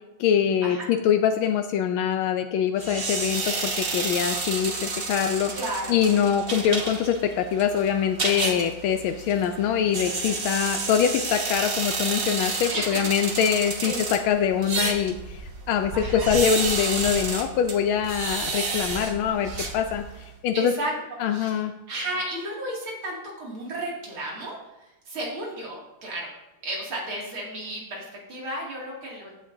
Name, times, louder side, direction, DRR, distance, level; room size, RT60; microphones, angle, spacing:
voice 1, 0.2-5.5 5.9-15.4 15.7-20.0 20.4-20.7 21.2-21.7, left 8 dB, 85° left, 7 dB, 1.4 m, -24 dB
sound 1, 2.8-20.3, right 3 dB, 35° right, 1.0 m, -31 dB
voice 2, 5.5-5.9 12.7-13.3 13.8-14.1 15.9-16.3 20.5-26.3 26.6-29.3, right 1 dB, 85° right, -3 dB, 3.3 m, -33 dB
14.5 x 8.6 x 2.7 m, 0.98 s
omnidirectional pair, 2.2 m